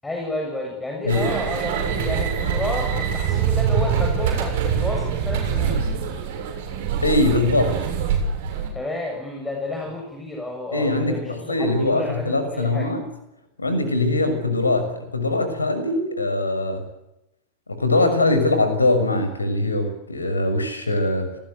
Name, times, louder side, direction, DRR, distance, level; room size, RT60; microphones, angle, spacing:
voice 1, 0.0-5.9 8.7-12.9, left 1 dB, 10° left, 2 dB, 7.0 m, -31 dB
sound 1, 1.1-8.7, right 7 dB, 55° right, 7.2 m, -24 dB
voice 2, 7.0-7.8 10.7-13.1 13.6-16.9 17.7-21.4, left 2 dB, 80° left, 9 dB, 6.4 m, -22 dB
30.0 x 20.5 x 8.1 m, 0.88 s
figure-of-eight pair, 90°, 0 cm